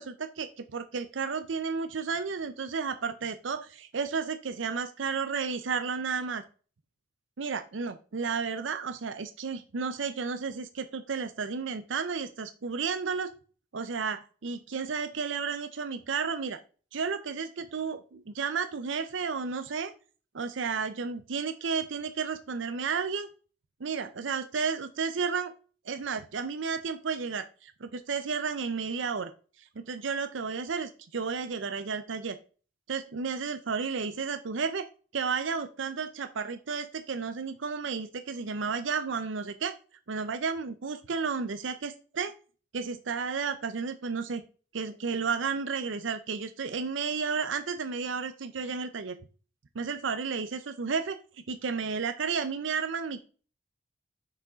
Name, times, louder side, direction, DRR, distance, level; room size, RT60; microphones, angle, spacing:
voice 1, 0.0-6.4 7.4-13.3 13.7-16.6 16.9-19.9 20.3-23.3 23.8-25.5 25.9-29.3 29.8-32.4 32.9-34.9 35.1-39.7 40.1-42.3 42.7-44.4 44.7-49.2 49.7-51.2 51.5-53.2, right 5 dB, 80° right, 9 dB, 0.6 m, -32 dB
6.3 x 4.9 x 5.0 m, 0.37 s
head